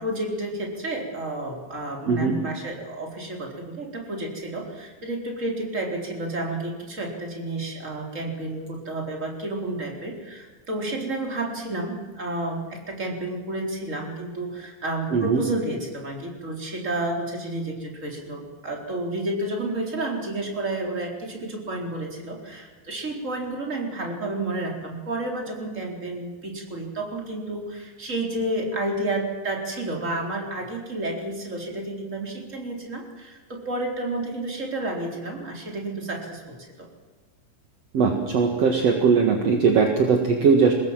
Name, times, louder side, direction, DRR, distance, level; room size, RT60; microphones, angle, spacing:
voice 1, 0.0-36.9, right 2 dB, 15° right, 1 dB, 3.9 m, -31 dB
voice 2, 15.1-15.4 37.9-40.7, right 5 dB, 50° right, 3 dB, 2.0 m, -20 dB
25.0 x 20.5 x 7.6 m, 1.3 s
omnidirectional pair, 5.2 m